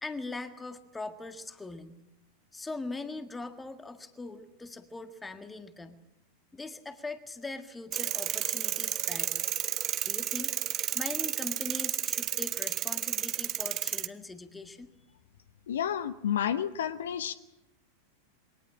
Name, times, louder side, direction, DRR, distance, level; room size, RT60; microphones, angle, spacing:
voice 1, 0.0-2.0 2.5-6.0 6.5-9.4 10.0-10.6 10.9-14.9, left 3 dB, 10° left, 9 dB, 1.7 m, -41 dB
sound 1, 7.9-14.1, right 12 dB, 30° right, 1.0 m, -32 dB
voice 2, 15.7-17.3, left 9 dB, 60° left, 14 dB, 0.8 m, -30 dB
22.5 x 19.0 x 8.6 m, 0.90 s
figure-of-eight pair, 90°, 0 cm